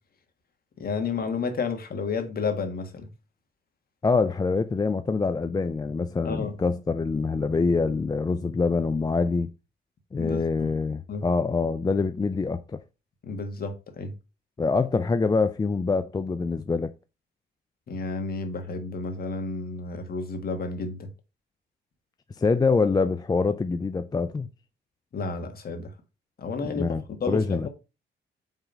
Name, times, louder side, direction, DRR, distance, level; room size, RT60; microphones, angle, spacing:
voice 1, 0.8-3.1 6.2-6.6 10.2-10.7 11.1-11.3 13.2-14.1 17.9-21.1 25.1-25.9 26.4-27.7, left 4 dB, 50° left, 1.7 m, -31 dB
voice 2, 4.0-9.5 10.1-12.8 14.6-16.9 22.3-24.5 26.6-27.7, left 4 dB, 20° left, 0.4 m, -25 dB
5.7 x 3.6 x 5.3 m
cardioid pair, 90°, 20 cm